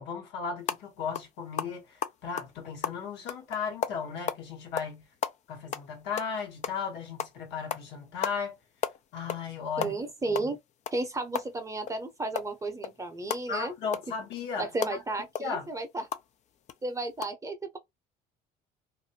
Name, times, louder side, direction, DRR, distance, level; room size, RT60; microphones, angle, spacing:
voice 1, 0.0-5.1 5.5-8.5 9.1-9.9 13.5-15.0 15.4-15.7, left 6 dB, 70° left, 1.2 m, -36 dB
sound 1, 0.6-0.8 1.1-1.3 1.6-4.4 4.8-5.0 5.2-6.9 7.2-7.4 7.7-7.9 8.2-8.4 8.6-9.5 9.7-12.0 12.4-16.3 16.7-16.8 17.1-17.2, left 8 dB, 40° left, 0.4 m, -34 dB
voice 2, 9.8-10.6 10.9-13.7 14.6-16.1 16.8-17.8, right 2 dB, 15° right, 0.7 m, -33 dB
2.5 x 2.1 x 2.7 m
supercardioid pair, 90°, 19 cm